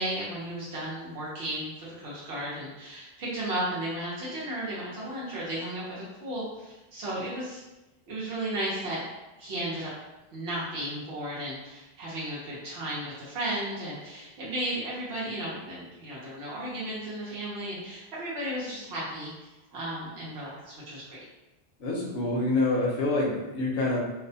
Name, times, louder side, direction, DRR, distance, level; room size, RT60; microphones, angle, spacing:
voice 1, 0.0-7.6 8.1-9.0 9.4-9.9 10.3-21.2, right 1 dB, 90° right, -7 dB, 1.0 m, -34 dB
voice 2, 21.8-24.0, left 2 dB, 65° left, -2 dB, 0.8 m, -26 dB
2.6 x 2.1 x 2.6 m, 1.0 s
omnidirectional pair, 1.0 m